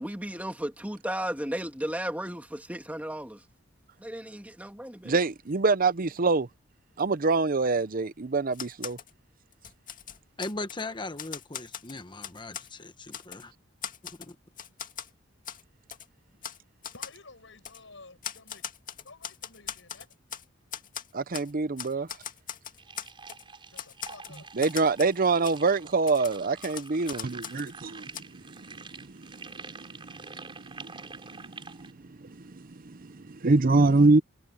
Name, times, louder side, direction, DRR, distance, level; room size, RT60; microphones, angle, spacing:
voice 1, 0.0-3.4 4.0-5.2, right 1 dB, 5° right, 2.5 m, -34 dB
voice 2, 5.0-6.5 7.0-9.0 21.1-22.1 24.6-31.3 32.1-34.2, right 3 dB, 45° right, 0.7 m, -26 dB
Typewriter, 8.5-9.1 9.5-10.8 11.2-12.7 13.1-13.4 13.8-15.1 15.4-15.6 15.9-16.1 16.4-16.6 16.8-17.2 17.6-17.8 18.2-20.4 20.7-21.5 21.8-23.4 23.8-25.2 25.4-25.6 26.1-27.7 28.1-28.2, left 9 dB, 40° left, 2.3 m, -40 dB
voice 3, 10.4-13.5 14.2-14.4, left 2 dB, 20° left, 1.2 m, -38 dB
voice 4, 16.9-18.6 19.0-20.1 23.7-24.7, left 3 dB, 60° left, 7.3 m, -52 dB
sound 1, 22.8-31.9, right 4 dB, 25° right, 7.0 m, -47 dB
head